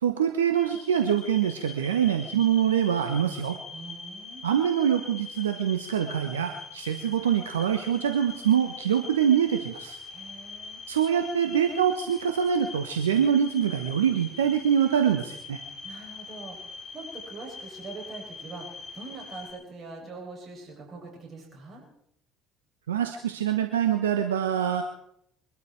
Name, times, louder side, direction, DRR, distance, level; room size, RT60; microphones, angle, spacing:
voice 1, 0.0-3.6 4.4-10.0 10.9-15.6 22.9-24.8, right 9 dB, 80° right, 6 dB, 1.1 m, -24 dB
sound 1, 0.5-19.5, left 4 dB, 45° left, 5.1 m, -43 dB
voice 2, 3.7-4.5 10.1-10.8 15.8-21.8, right 3 dB, 40° right, -1 dB, 7.8 m, -43 dB
23.0 x 13.0 x 4.7 m, 0.72 s
figure-of-eight pair, 60°, 0 cm